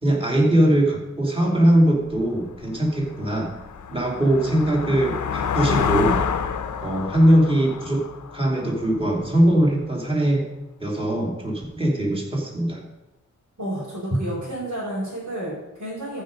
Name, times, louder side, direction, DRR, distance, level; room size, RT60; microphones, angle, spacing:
voice 1, 0.0-3.5 3.9-6.2 6.8-8.1 8.3-10.5 10.8-12.8, right 1 dB, 15° right, -2 dB, 2.9 m, -21 dB
sound 1, 2.1-2.2 2.7-9.3, left 6 dB, 75° left, 0.8 m, -28 dB
voice 2, 13.6-16.2, right 1 dB, 60° right, -8 dB, 4.5 m, -31 dB
14.0 x 5.2 x 5.2 m, 0.95 s
wide cardioid pair, 90°, 30 cm